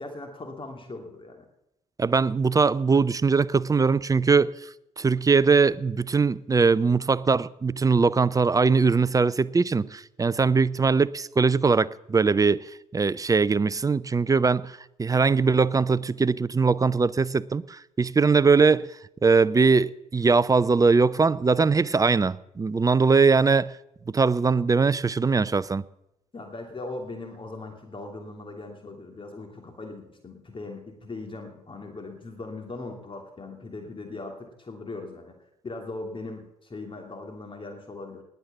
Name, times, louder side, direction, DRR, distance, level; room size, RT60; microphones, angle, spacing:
voice 1, 0.0-1.5 26.3-35.4 35.6-38.2, left 2 dB, 30° left, 2.8 m, -39 dB
voice 2, 2.0-4.5 5.0-12.6 12.9-18.9 19.2-23.7 24.1-25.8, right 4 dB, 20° right, 0.6 m, -21 dB
20.0 x 8.1 x 7.2 m
figure-of-eight pair, 50°, 19 cm